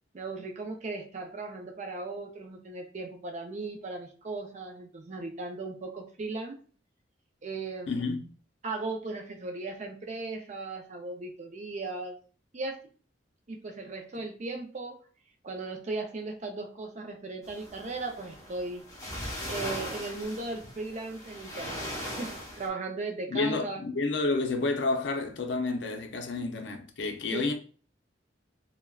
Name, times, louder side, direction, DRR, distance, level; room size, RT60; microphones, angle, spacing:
voice 1, 0.1-6.6 7.4-8.1 8.6-12.2 12.5-12.8 13.5-15.0 15.4-18.8 19.5-23.8 26.3-26.5 27.3-27.5, right 3 dB, 40° right, 0.4 m, -37 dB
voice 2, 7.9-8.2 23.3-27.5, left 3 dB, 70° left, 0.5 m, -30 dB
sound 1, 17.4-22.7, equal, 15° left, 0.8 m, -39 dB
3.4 x 2.1 x 2.3 m
head